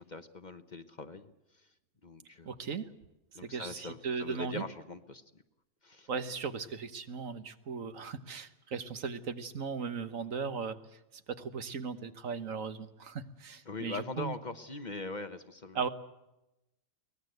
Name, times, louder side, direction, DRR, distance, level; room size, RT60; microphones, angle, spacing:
voice 1, 0.0-1.3 2.0-2.5 3.3-5.2 5.8-6.1 13.7-15.8, left 3 dB, 35° left, 10 dB, 1.0 m, -41 dB
voice 2, 2.4-2.9 3.5-4.6 6.1-10.8 11.4-14.3 15.7-15.9, right 5 dB, 75° right, 11 dB, 1.7 m, -37 dB
23.5 x 18.5 x 7.9 m, 0.93 s
omnidirectional pair, 1.4 m